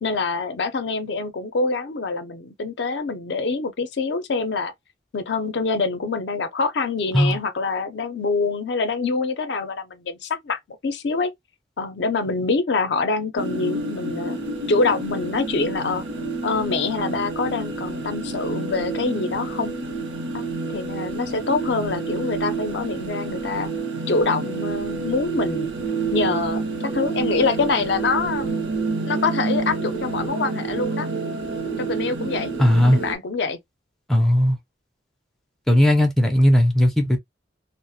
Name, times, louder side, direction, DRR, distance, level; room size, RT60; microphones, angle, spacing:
voice 1, 0.0-4.7 5.1-11.3 11.8-14.4 14.7-16.0 16.4-19.7 20.3-20.4 20.7-23.7 24.1-25.7 26.1-28.5 29.1-31.1 31.8-32.5 32.9-33.6, left 4 dB, 65° left, 0.4 m, -25 dB
sound 1, 13.4-33.1, right 3 dB, 80° right, 0.7 m, -28 dB
voice 2, 32.6-33.0 34.1-34.6 35.7-37.2, equal, ahead, 0.4 m, -17 dB
2.3 x 2.0 x 2.6 m
head